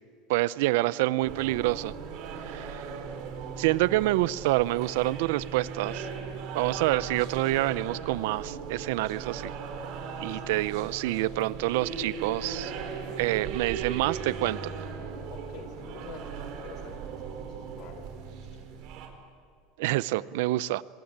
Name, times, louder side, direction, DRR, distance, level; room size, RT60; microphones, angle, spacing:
voice 1, 0.3-1.9 2.5-2.9 3.6-6.1 6.5-9.5 10.2-12.7 13.2-14.6 19.8-20.8, right 18 dB, 75° right, 19 dB, 0.7 m, -27 dB
sound 1, 1.2-19.1, right 6 dB, 60° right, 4.2 m, -38 dB
voice 2, 10.2-11.0 15.3-17.2 17.5-18.7, left 7 dB, 55° left, 8 dB, 4.2 m, -48 dB
24.0 x 22.0 x 8.9 m, 2.3 s
supercardioid pair, 125°, 0 cm